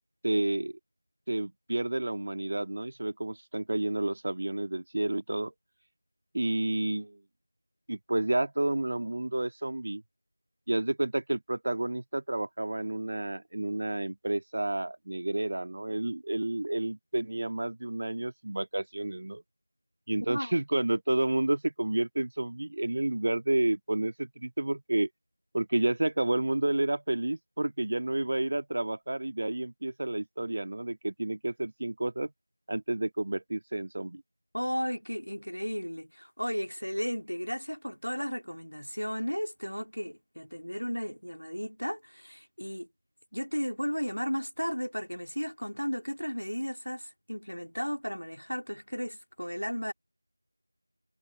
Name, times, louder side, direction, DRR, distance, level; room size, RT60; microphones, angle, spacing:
voice 1, 0.2-0.8 1.3-5.5 6.3-7.2 7.9-10.0 10.7-19.4 20.1-25.1 25.5-32.3 32.7-34.2, right 2 dB, 30° right, 1.8 m, -30 dB
voice 2, 34.5-42.9 43.3-49.9, equal, 85° left, 3.0 m, -34 dB
figure-of-eight pair, 175°, 0 cm